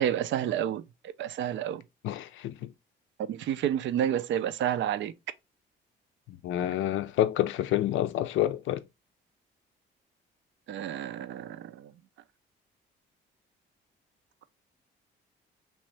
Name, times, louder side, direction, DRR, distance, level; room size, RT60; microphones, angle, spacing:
voice 1, 0.0-1.8 3.3-5.1 10.7-11.9, right 10 dB, 70° right, 0.4 m, -30 dB
voice 2, 2.0-2.7 6.3-8.8, left 12 dB, 75° left, 0.4 m, -28 dB
3.1 x 2.6 x 3.2 m
cardioid pair, 90°, 20 cm